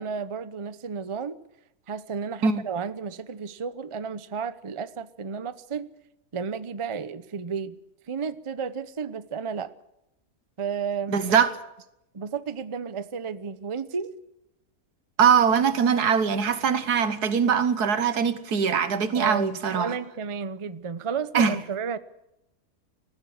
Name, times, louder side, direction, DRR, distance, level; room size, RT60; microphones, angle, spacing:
voice 1, 0.0-1.4 1.9-5.9 6.3-7.8 8.1-9.7 10.6-11.3 12.1-14.1 19.1-22.0, right 6 dB, 30° right, 0.6 m, -32 dB
voice 2, 11.1-11.5 15.2-20.0 21.3-21.6, right 6 dB, 85° right, 1.8 m, -22 dB
20.0 x 15.0 x 9.7 m
omnidirectional pair, 1.6 m